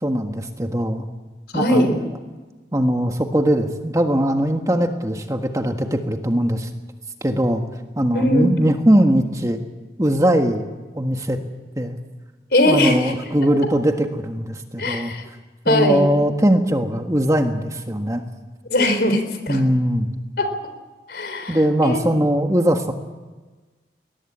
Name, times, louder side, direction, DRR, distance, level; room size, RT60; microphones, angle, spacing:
voice 1, 0.0-1.0 1.5-2.1 2.7-6.7 7.2-7.6 8.0-9.6 10.0-10.6 10.9-11.4 11.7-12.0 12.6-15.1 15.7-18.2 19.5-20.1 21.5-22.9, equal, 20° right, 5 dB, 1.5 m, -20 dB
voice 2, 1.5-2.0 8.1-8.5 12.5-13.3 14.8-15.2 15.7-16.1 18.7-19.6 20.4-20.5 21.1-22.0, left 1 dB, 65° left, 8 dB, 3.7 m, -20 dB
21.5 x 18.5 x 8.8 m, 1.2 s
head